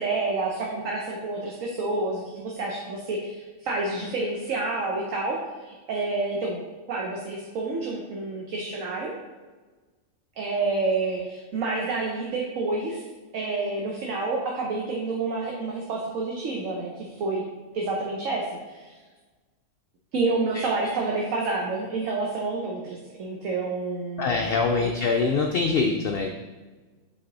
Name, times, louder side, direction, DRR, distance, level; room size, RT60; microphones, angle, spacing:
voice 1, 0.0-5.4 5.6-6.6 6.9-9.1 10.4-13.0 13.3-17.4 17.7-18.9 20.1-24.5 24.8-24.9, right 3 dB, 65° right, -1 dB, 1.2 m, -29 dB
voice 2, 24.2-26.3, left 4 dB, 65° left, 3 dB, 0.5 m, -24 dB
7.7 x 4.0 x 3.9 m, 1.3 s
omnidirectional pair, 1.5 m